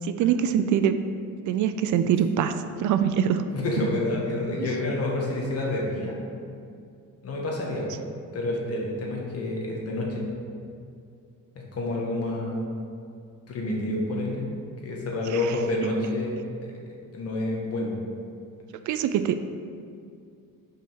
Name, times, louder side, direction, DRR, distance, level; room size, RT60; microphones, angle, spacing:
voice 1, 0.0-1.0 1.5-3.4 4.6-4.7 18.9-19.4, right 9 dB, 65° right, 10 dB, 0.5 m, -23 dB
voice 2, 3.5-6.2 7.2-7.9 8.3-10.2 11.7-12.6 13.5-14.5 14.8-16.8 17.1-18.0, left 2 dB, 45° left, -2 dB, 1.7 m, -28 dB
5.6 x 5.0 x 6.3 m, 2.4 s
cardioid pair, 125°, 33 cm